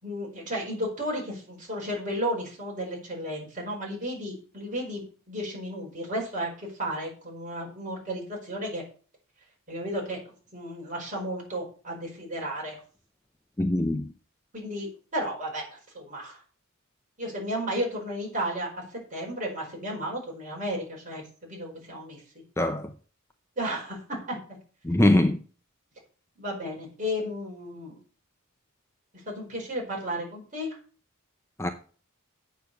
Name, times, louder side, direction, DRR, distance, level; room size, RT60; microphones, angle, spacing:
voice 1, 0.0-5.0 5.3-8.8 9.7-10.2 10.5-12.8 14.5-16.4 17.2-18.7 19.1-22.2 23.6-24.4 26.4-28.0 29.3-30.7, equal, 35° right, 4.8 m, -33 dB
voice 2, 13.6-14.1 22.6-22.9 24.8-25.4 31.6-31.7, left 1 dB, 10° left, 0.6 m, -22 dB
8.2 x 6.7 x 6.6 m
head